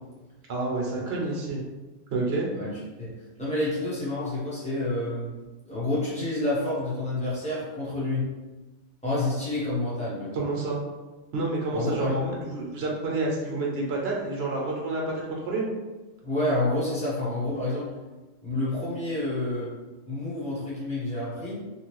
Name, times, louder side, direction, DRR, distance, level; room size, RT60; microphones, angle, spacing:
voice 1, 0.5-1.6 2.1-2.5 10.3-10.8 11.3-15.7, right 2 dB, 55° right, -2 dB, 0.9 m, -29 dB
voice 2, 3.4-5.3 5.7-8.3 9.0-10.4 11.7-12.2 16.2-17.9 18.4-19.7 20.1-21.5, left 1 dB, 5° left, -9 dB, 0.9 m, -28 dB
3.0 x 2.4 x 3.1 m, 1.2 s
omnidirectional pair, 1.4 m